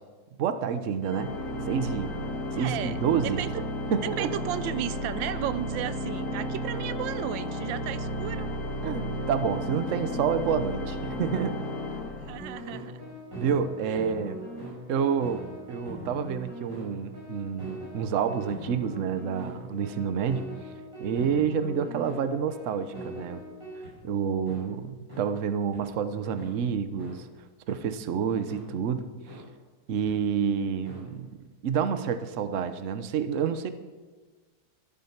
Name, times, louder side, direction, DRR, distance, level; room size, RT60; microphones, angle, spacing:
voice 1, 0.4-1.4 1.6-2.1 2.5-3.4 3.9-4.3 8.8-11.6 13.3-14.4 14.9-20.5 21.0-23.4 24.0-27.3 27.7-29.1 29.9-31.3 31.6-33.7, right 7 dB, 55° right, 11 dB, 1.0 m, -28 dB
Organ, 1.0-12.9, equal, 55° left, 1.8 m, -33 dB
voice 2, 2.6-3.6 4.2-8.5 12.2-13.0 13.9-14.0, right 12 dB, 90° right, 15 dB, 1.3 m, -34 dB
sound 1, 12.4-23.9 24.5-24.6 25.1-25.2 25.7-25.8 26.4-26.5 27.0-27.1 27.7-27.8 28.5-28.6 29.3-29.4 30.1-30.2 30.8-31.0, equal, 75° right, 6.8 m, -41 dB
13.0 x 12.5 x 5.9 m, 1.4 s
omnidirectional pair, 2.0 m